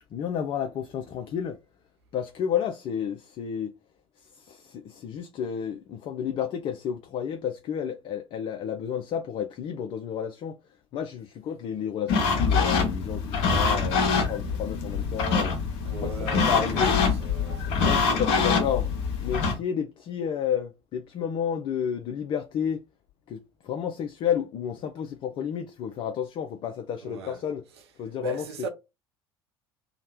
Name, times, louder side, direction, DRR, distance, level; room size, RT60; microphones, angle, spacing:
voice 1, 0.1-1.6 2.1-3.7 4.4-10.6 10.9-15.6 16.0-17.0 17.8-18.9 19.2-22.8 23.3-27.6 28.0-28.5, left 8 dB, 40° left, 0.4 m, -31 dB
sound 1, 12.1-19.6, left 5 dB, 60° left, 0.7 m, -25 dB
voice 2, 15.8-17.9 18.1-18.2 27.0-27.4 28.2-28.7, right 3 dB, 70° right, 0.6 m, -38 dB
2.8 x 2.1 x 2.9 m
figure-of-eight pair, 65°, 14 cm